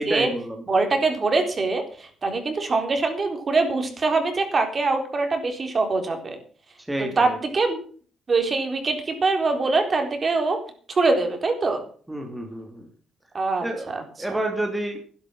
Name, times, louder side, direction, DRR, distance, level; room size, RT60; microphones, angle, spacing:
voice 1, 0.0-0.6 6.9-7.4 12.1-12.9 13.6-13.8 14.2-15.0, right 1 dB, 10° right, 3 dB, 2.8 m, -29 dB
voice 2, 0.7-6.4 7.0-7.8 8.3-10.6 10.9-11.8 13.3-14.0, right 3 dB, 35° right, 5 dB, 4.0 m, -23 dB
11.5 x 11.5 x 6.2 m, 0.43 s
cardioid pair, 90°, 0 cm